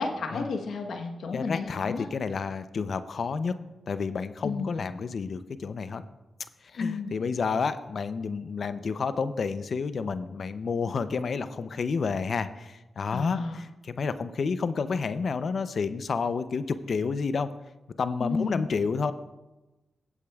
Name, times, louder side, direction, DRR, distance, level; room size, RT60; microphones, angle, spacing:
voice 1, 0.0-2.1 4.4-4.7 6.8-7.1 13.1-13.6 18.2-18.7, left 4 dB, 80° left, 4 dB, 1.0 m, -32 dB
voice 2, 1.3-3.6 3.9-6.0 6.7-17.5 18.0-19.1, left 5 dB, 65° left, 13 dB, 0.5 m, -30 dB
16.0 x 8.2 x 2.3 m, 1.0 s
cardioid pair, 60°, 0 cm